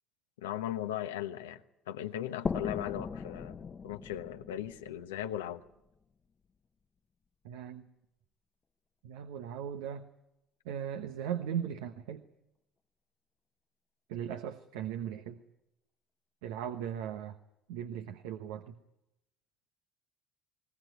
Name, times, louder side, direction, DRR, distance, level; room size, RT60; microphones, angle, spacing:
voice 1, 0.4-5.6, left 12 dB, 85° left, 8 dB, 1.0 m, -38 dB
sound 1, 2.5-6.0, left 5 dB, 35° left, 0.9 m, -39 dB
voice 2, 7.4-7.8 9.0-10.0 10.6-12.2 14.1-15.4 16.4-17.4 17.7-18.8, right 9 dB, 80° right, 8 dB, 1.0 m, -38 dB
20.0 x 20.0 x 9.4 m, 0.88 s
hypercardioid pair, 60°, 0 cm